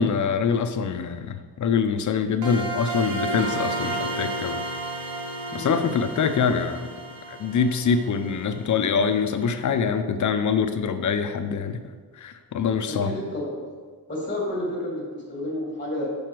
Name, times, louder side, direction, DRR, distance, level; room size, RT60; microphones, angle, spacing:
voice 1, 0.0-4.6 5.5-6.9 7.4-11.8 12.2-13.2, left 6 dB, 50° left, 9 dB, 0.6 m, -24 dB
sound 1, 2.4-9.1, right 2 dB, 50° right, 1.3 m, -32 dB
voice 2, 5.5-5.8 12.9-13.5 14.1-16.1, left 1 dB, 20° left, -4 dB, 2.2 m, -30 dB
6.4 x 5.9 x 4.6 m, 1.5 s
wide cardioid pair, 135°, 37 cm